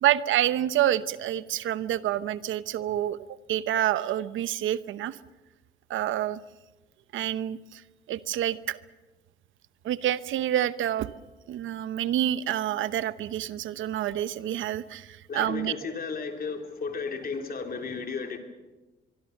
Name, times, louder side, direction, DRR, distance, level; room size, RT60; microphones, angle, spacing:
voice 1, 0.0-5.2 5.9-6.4 7.1-7.8 8.1-8.8 9.8-11.1 11.5-15.7, right 12 dB, 80° right, 15 dB, 0.9 m, -28 dB
voice 2, 15.3-18.4, left 5 dB, 50° left, 4 dB, 3.7 m, -34 dB
24.5 x 23.5 x 6.6 m, 1.1 s
cardioid pair, 90°, 20 cm